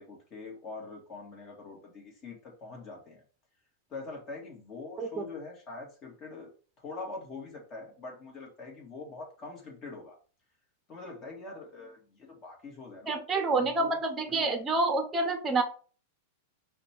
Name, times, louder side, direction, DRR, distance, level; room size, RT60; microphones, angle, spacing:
voice 1, 0.0-3.2 3.9-6.5 6.8-10.2 10.9-13.2 13.5-14.5, left 3 dB, 30° left, 0 dB, 1.5 m, -44 dB
voice 2, 13.1-15.6, right 3 dB, 15° right, 7 dB, 0.7 m, -28 dB
4.9 x 2.3 x 4.3 m, 0.39 s
hypercardioid pair, 130°, 0 cm